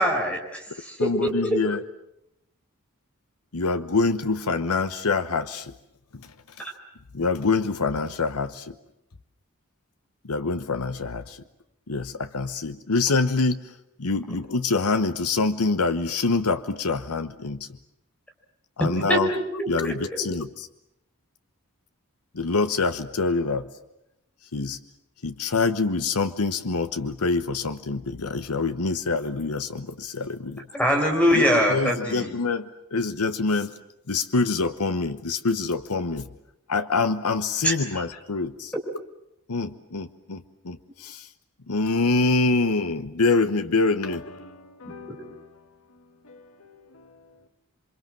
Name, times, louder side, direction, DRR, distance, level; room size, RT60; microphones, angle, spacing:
voice 1, 0.0-1.6 19.1-20.2 30.7-32.3 37.6-37.7, equal, 5° left, 4.6 m, -23 dB
voice 2, 1.0-1.8 3.5-5.7 6.1-6.3 7.1-8.7 10.2-11.4 11.9-13.7 14.0-17.7 18.8-20.7 22.3-23.7 24.5-24.8 25.2-30.7 31.3-33.7 34.1-36.3 36.7-38.7 39.5-41.3 41.7-44.4, left 3 dB, 90° left, 1.0 m, -25 dB
voice 3, 44.0-45.5 46.2-47.1, left 2 dB, 75° left, 1.7 m, -45 dB
28.5 x 24.0 x 7.5 m
head